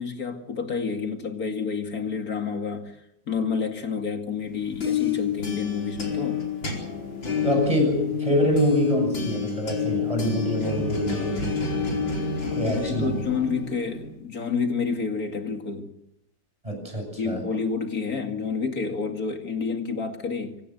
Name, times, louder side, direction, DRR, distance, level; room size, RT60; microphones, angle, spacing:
voice 1, 0.0-3.0 3.3-6.5 12.6-15.9 17.2-20.6, left 5 dB, 50° left, 2.7 m, -29 dB
sound 1, 4.5-14.1, left 6 dB, 85° left, 5.5 m, -28 dB
voice 2, 7.4-11.5 12.5-13.2 16.6-17.4, equal, 15° right, 8.1 m, -25 dB
25.0 x 18.0 x 8.0 m
omnidirectional pair, 2.0 m